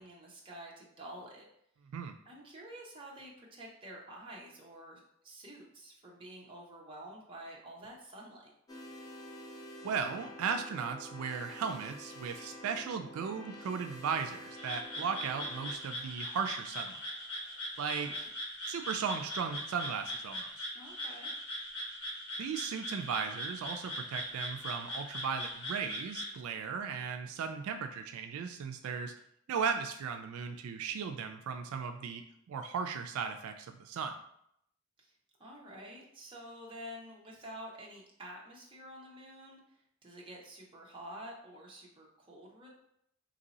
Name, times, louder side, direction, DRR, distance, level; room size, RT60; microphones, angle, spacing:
voice 1, 0.0-1.4 2.2-8.5 18.0-18.3 20.7-21.3 35.0-35.1 35.4-42.7, right 1 dB, 25° right, -2 dB, 0.7 m, -49 dB
sound 1, 8.7-17.6, equal, 15° left, 0.4 m, -49 dB
voice 2, 9.8-17.0 17.8-18.3 18.7-20.7 22.4-29.1 29.5-32.2 32.5-34.2, right 6 dB, 80° right, 6 dB, 0.3 m, -36 dB
Frog, 14.6-26.3, equal, 80° left, 1.1 m, -41 dB
3.0 x 2.7 x 4.0 m, 0.74 s
head